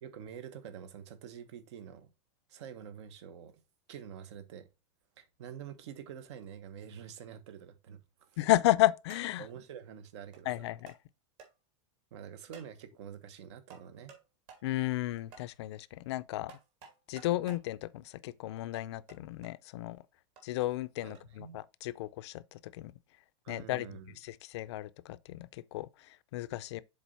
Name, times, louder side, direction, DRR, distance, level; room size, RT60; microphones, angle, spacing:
voice 1, 0.0-2.1 2.5-3.6 3.9-4.7 5.2-8.3 9.4-10.7 12.1-14.1 21.0-21.6 23.4-24.2, right 8 dB, 65° right, 1.2 m, -47 dB
sound 1, 8.2-8.5 9.1-9.5 10.3-10.4 10.9-11.0 11.4-11.5 12.5-12.7 13.7-14.2 14.5-14.6 15.3-15.5 16.5-17.6 18.7-19.5 20.4-20.5 21.1-21.3, right 6 dB, 45° right, 2.2 m, -54 dB
voice 2, 8.4-9.5 10.5-10.9 14.6-16.6 17.1-20.0 20.4-22.9 23.5-23.9 24.2-26.8, left 16 dB, 60° left, 0.5 m, -33 dB
7.1 x 4.0 x 4.2 m
supercardioid pair, 165°, 16 cm